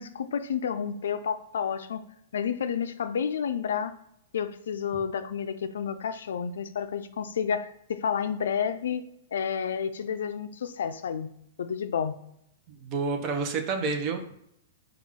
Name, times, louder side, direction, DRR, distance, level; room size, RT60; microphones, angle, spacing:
voice 1, 0.0-2.0 2.3-3.9 4.3-9.1 9.3-11.3 11.6-12.2, left 7 dB, 85° left, 11 dB, 0.4 m, -30 dB
voice 2, 12.7-14.3, right 4 dB, 30° right, 4 dB, 0.7 m, -29 dB
4.9 x 2.4 x 3.6 m, 0.76 s
hypercardioid pair, 155°, 0 cm